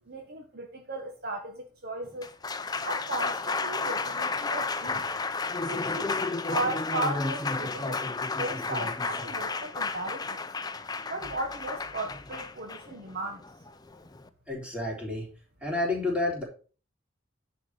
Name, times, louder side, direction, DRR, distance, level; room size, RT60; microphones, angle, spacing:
voice 1, 0.1-2.3 2.8-5.1 5.6-10.4 11.1-13.4, right 2 dB, 50° right, 1.4 m, -36 dB
Applause, 2.0-14.3, left 3 dB, 20° left, 0.6 m, -32 dB
voice 2, 14.5-15.3 15.6-16.4, left 2 dB, 5° right, 3.7 m, -29 dB
10.0 x 5.0 x 6.3 m
head